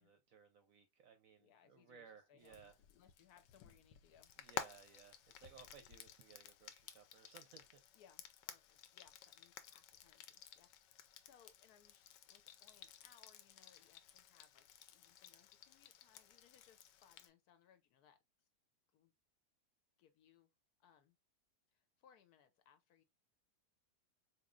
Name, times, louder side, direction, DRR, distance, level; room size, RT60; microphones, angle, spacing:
voice 1, 0.0-2.8 4.4-7.8, right 6 dB, 65° right, 0.8 m, -61 dB
voice 2, 1.4-4.3 7.9-18.5 18.9-19.1 20.0-20.5 20.8-21.2 21.7-23.0, left 8 dB, 70° left, 1.1 m, -69 dB
Frying (food), 2.4-17.3, left 10 dB, 90° left, 1.2 m, -54 dB
4.2 x 3.0 x 2.4 m
omnidirectional pair, 1.9 m